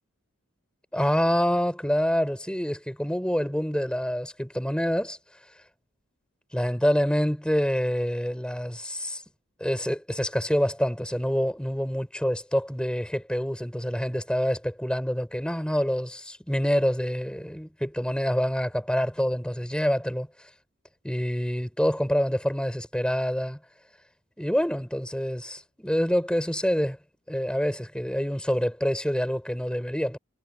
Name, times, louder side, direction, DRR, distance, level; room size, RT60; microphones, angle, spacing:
voice 1, 0.9-5.2 6.5-9.2 9.6-20.3 21.0-23.6 24.4-27.0 27.3-30.2, equal, 5° left, 6.1 m, -26 dB
head